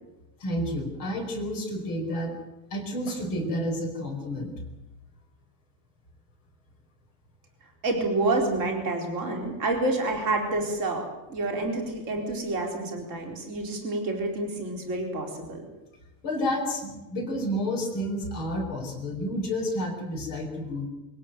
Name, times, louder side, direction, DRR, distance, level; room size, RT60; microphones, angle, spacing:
voice 1, 0.4-2.3 2.7-4.5 16.2-20.9, equal, 30° left, 0 dB, 5.7 m, -30 dB
voice 2, 7.8-15.6, right 2 dB, 20° right, 2 dB, 4.3 m, -28 dB
26.0 x 17.0 x 9.2 m, 1.0 s
omnidirectional pair, 4.7 m